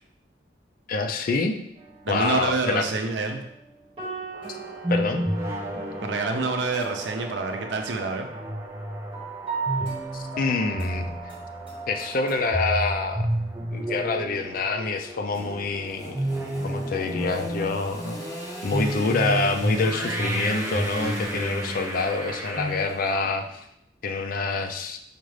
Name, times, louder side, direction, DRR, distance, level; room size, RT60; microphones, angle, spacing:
voice 1, 0.9-1.6 2.1-2.9 4.9-5.2 10.1-11.1 11.9-13.3 13.7-16.2 16.6-18.2 18.6-23.4 24.0-25.0, left 3 dB, 55° left, 5 dB, 0.4 m, -26 dB
sound 1, 1.8-12.4, right 4 dB, 35° right, 1.2 m, -38 dB
voice 2, 2.0-3.4 6.0-8.3, right 3 dB, 80° right, 4 dB, 0.5 m, -27 dB
sound 2, 4.3-22.7, right 1 dB, 15° right, 0.4 m, -31 dB
Engine / Sawing, 15.3-23.6, equal, 20° left, 0.8 m, -41 dB
5.0 x 2.4 x 3.2 m, 0.77 s
head